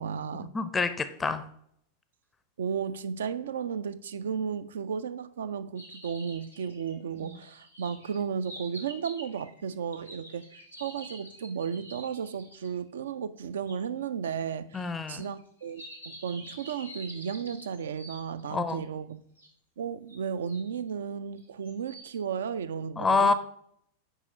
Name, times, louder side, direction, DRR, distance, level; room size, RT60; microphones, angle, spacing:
voice 1, 0.0-0.5 2.6-19.2 19.8-23.3, right 7 dB, 65° right, 0.4 m, -34 dB
voice 2, 0.5-1.5 7.3-7.4 14.7-15.2 18.5-18.8 23.0-23.3, left 4 dB, 15° left, 0.5 m, -27 dB
sound 1, 5.8-12.8 13.7-13.8 15.1-18.8 19.4-19.5 20.1-20.7 21.4-22.2, right 1 dB, 90° right, 1.3 m, -48 dB
5.5 x 4.8 x 5.1 m
figure-of-eight pair, 90°, 0 cm